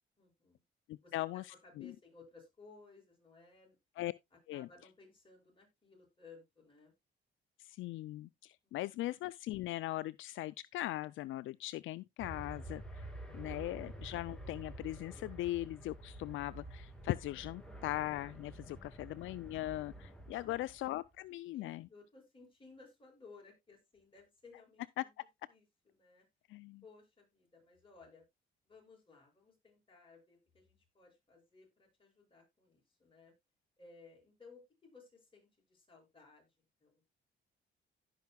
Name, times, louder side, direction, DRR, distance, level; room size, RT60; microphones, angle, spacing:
voice 1, 0.2-0.6 1.0-3.8 4.3-6.9 8.6-9.0 20.3-20.6 21.5-25.1 25.5-26.3 26.8-28.2 28.7-33.3 33.8-37.0, left 4 dB, 25° left, 7.0 m, -60 dB
voice 2, 0.9-1.9 4.0-4.1 4.5-4.7 7.6-13.1 13.3-21.9 25.2-25.3 26.5-26.8, left 16 dB, 80° left, 0.4 m, -40 dB
sound 1, 12.2-21.0, right 1 dB, 5° left, 2.6 m, -49 dB
16.5 x 5.7 x 2.3 m
cardioid pair, 90°, 20 cm